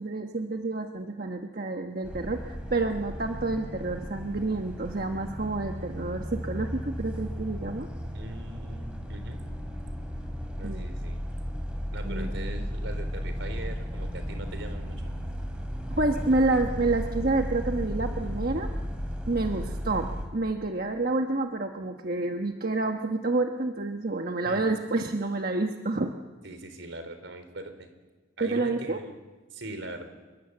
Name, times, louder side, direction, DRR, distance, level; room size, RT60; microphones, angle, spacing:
voice 1, 0.0-7.9 10.6-10.9 12.0-12.6 16.0-18.7 19.3-26.1 28.4-29.0, right 2 dB, 50° right, 4 dB, 1.2 m, -29 dB
sound 1, 2.0-20.3, equal, 5° right, 3.6 m, -35 dB
voice 2, 8.1-9.4 10.6-11.2 11.9-15.1 24.4-24.8 26.4-27.9 28.4-29.2 29.5-30.0, right 1 dB, 80° right, 8 dB, 3.9 m, -41 dB
27.0 x 22.5 x 8.1 m, 1.3 s
head